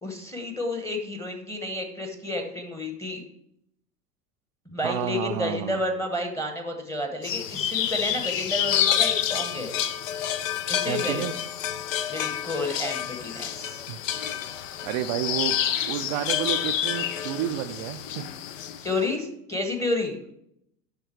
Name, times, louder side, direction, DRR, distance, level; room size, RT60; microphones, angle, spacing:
voice 1, 0.0-3.2 4.6-9.7 10.7-11.3 12.0-13.9 18.8-20.3, left 2 dB, 5° left, 4 dB, 1.1 m, -30 dB
voice 2, 4.8-5.8 10.9-11.4 13.9-14.5 14.8-15.6 15.8-18.3, right 12 dB, 35° right, 10 dB, 0.5 m, -31 dB
sound 1, 7.2-18.9, left 10 dB, 55° left, 0.7 m, -28 dB
11.5 x 3.9 x 4.5 m, 0.77 s
figure-of-eight pair, 90°, 47 cm